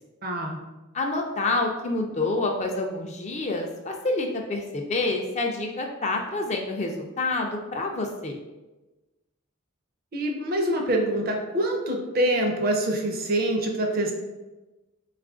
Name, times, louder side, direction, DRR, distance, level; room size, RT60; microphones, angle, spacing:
voice 1, 0.2-0.6 10.1-14.1, right 1 dB, 45° right, 2 dB, 0.5 m, -25 dB
voice 2, 0.9-8.4, left 2 dB, 30° left, 2 dB, 0.4 m, -28 dB
3.7 x 2.4 x 3.6 m, 1.1 s
head